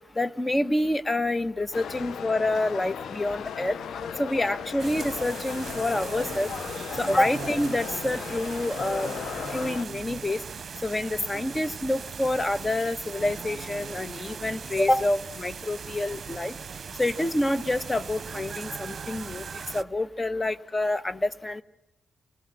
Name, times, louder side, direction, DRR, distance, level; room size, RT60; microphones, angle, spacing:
voice 1, 0.2-3.8 4.2-6.5 7.0-9.1 9.5-10.4 10.8-16.5 17.0-19.4 19.7-21.6, left 1 dB, 25° left, 12 dB, 1.5 m, -27 dB
sound 1, 1.7-9.8, left 7 dB, 70° left, 1.1 m, -36 dB
sound 2, 4.8-19.8, right 6 dB, 55° right, 0.8 m, -39 dB
26.0 x 19.5 x 7.3 m, 0.86 s
supercardioid pair, 45°, 0 cm